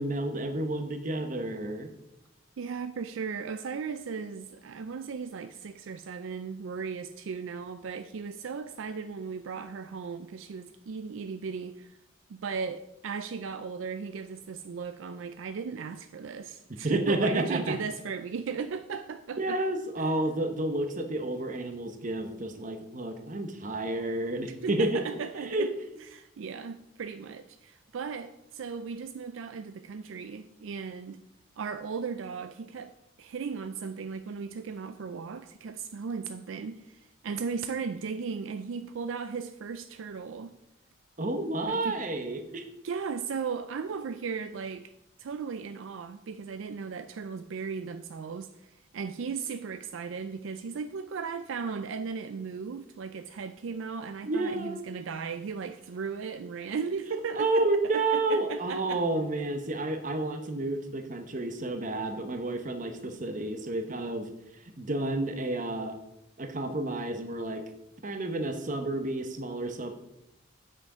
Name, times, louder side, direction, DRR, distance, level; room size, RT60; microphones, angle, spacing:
voice 1, 0.0-1.9 16.8-17.8 19.4-25.0 25.4-25.7 41.2-42.7 54.2-54.8 57.1-66.0 66.4-67.6 68.0-69.9, right 2 dB, 40° right, 0.9 m, -30 dB
voice 2, 2.6-12.0 12.3-19.6 20.0-20.1 24.4-25.7 26.1-31.2 31.6-32.9 33.2-40.6 41.7-42.0 42.8-44.9 45.2-57.7 57.9-59.0, right 5 dB, 70° right, 0.4 m, -36 dB
7.6 x 6.4 x 4.9 m
head